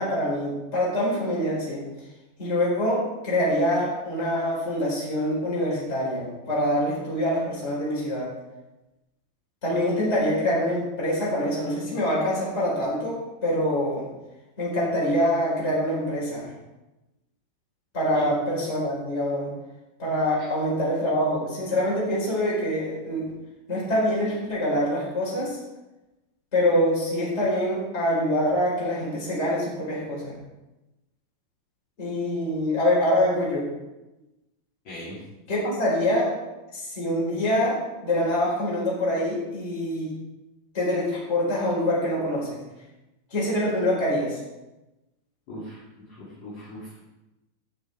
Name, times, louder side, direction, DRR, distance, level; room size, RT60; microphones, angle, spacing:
voice 1, 0.0-1.9 2.4-8.3 9.6-14.1 14.6-16.5 17.9-19.5 20.0-23.2 23.7-25.6 26.5-30.3 32.0-33.7 35.5-36.3 36.7-40.1 40.7-42.6 43.3-44.4, left 1 dB, 15° left, -6 dB, 4.0 m, -25 dB
voice 2, 45.5-45.8 46.4-47.0, left 1 dB, 40° left, -9 dB, 3.2 m, -38 dB
14.5 x 7.0 x 4.7 m, 1.0 s
omnidirectional pair, 6.0 m